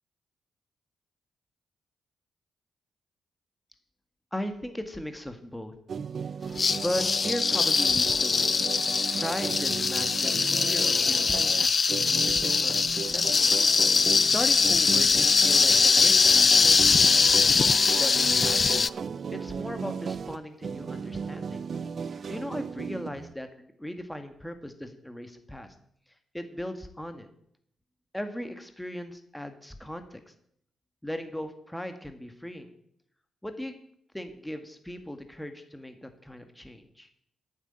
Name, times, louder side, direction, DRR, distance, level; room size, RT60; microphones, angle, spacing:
voice 1, 4.3-5.7 6.8-8.6 9.1-13.5 14.3-17.4 17.9-18.9 19.3-21.6 22.0-25.7 26.3-27.3 28.1-30.3 31.0-32.7 33.4-33.7 34.1-37.1, equal, 5° left, 7 dB, 1.8 m, -37 dB
sound 1, 5.9-23.3, right 6 dB, 60° right, 0.5 m, -36 dB
sound 2, 6.6-18.9, left 5 dB, 45° left, 0.4 m, -22 dB
9.4 x 7.3 x 8.8 m, 0.69 s
supercardioid pair, 55°, 0 cm